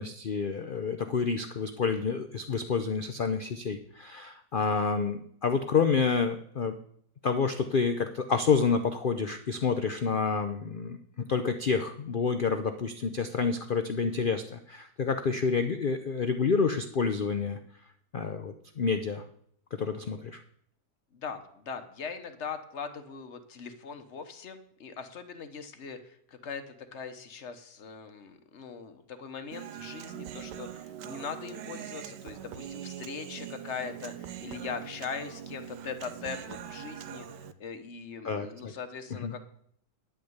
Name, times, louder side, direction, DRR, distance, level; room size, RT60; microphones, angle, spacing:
voice 1, 0.0-6.7 7.2-17.6 18.1-19.2 19.7-20.4 38.2-38.7 39.2-39.3, left 5 dB, 85° left, 8 dB, 0.4 m, -29 dB
voice 2, 21.1-39.4, left 6 dB, 50° left, 8 dB, 1.1 m, -41 dB
Human voice, 29.5-37.5, right 9 dB, 90° right, 1.3 m, -42 dB
10.5 x 5.8 x 7.9 m, 0.67 s
omnidirectional pair, 1.8 m